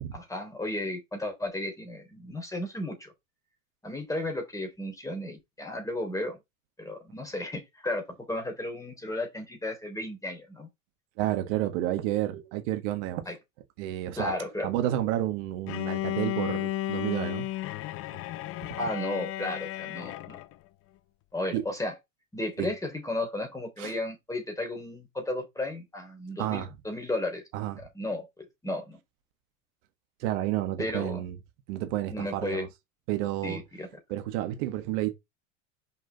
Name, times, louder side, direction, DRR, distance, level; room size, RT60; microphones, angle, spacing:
voice 1, 0.1-3.1 3.8-6.4 6.8-10.7 13.2-13.4 14.2-14.7 18.8-20.4 21.3-21.9 22.3-27.4 27.8-28.2 28.6-29.0 30.8-31.2 32.1-32.7 33.4-33.9, left 1 dB, 10° left, 3.3 m, -34 dB
voice 2, 11.2-13.2 13.8-17.5 21.5-21.6 22.6-22.7 23.8-23.9 26.4-26.7 27.5-27.8 30.2-31.4 31.7-32.7 33.1-33.6 34.1-35.1, right 13 dB, 60° right, 1.6 m, -30 dB
Bowed string instrument, 15.7-20.5, left 14 dB, 35° left, 0.6 m, -33 dB
5.8 x 5.0 x 4.0 m
hypercardioid pair, 110°, 40 cm